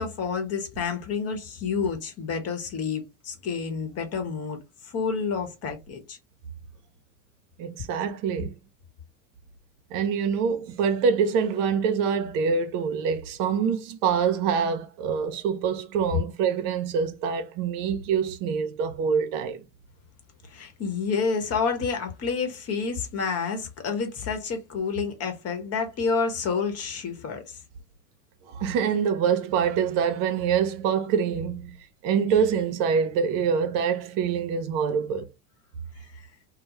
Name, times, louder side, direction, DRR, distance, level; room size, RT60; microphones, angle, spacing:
voice 1, 0.0-6.2 20.5-27.6 36.1-36.3, left 5 dB, 40° left, 0.9 m, -29 dB
voice 2, 7.6-8.5 9.9-19.6 28.5-31.8 32.0-35.3, right 6 dB, 55° right, 0.6 m, -25 dB
2.2 x 2.1 x 2.9 m
hypercardioid pair, 85°, 39 cm